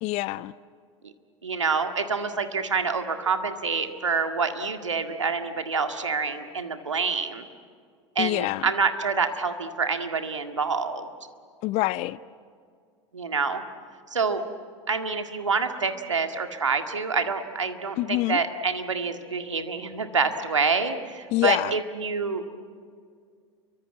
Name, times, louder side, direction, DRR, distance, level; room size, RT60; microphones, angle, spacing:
voice 1, 0.0-0.5 8.2-8.7 11.6-12.2 18.0-18.4 21.3-21.7, left 18 dB, 45° left, 0.6 m, -26 dB
voice 2, 1.4-7.4 8.2-11.1 13.1-13.6 14.1-14.4 14.9-22.4, right 5 dB, 90° right, 1.9 m, -27 dB
29.0 x 24.0 x 8.6 m
hypercardioid pair, 85°, 15 cm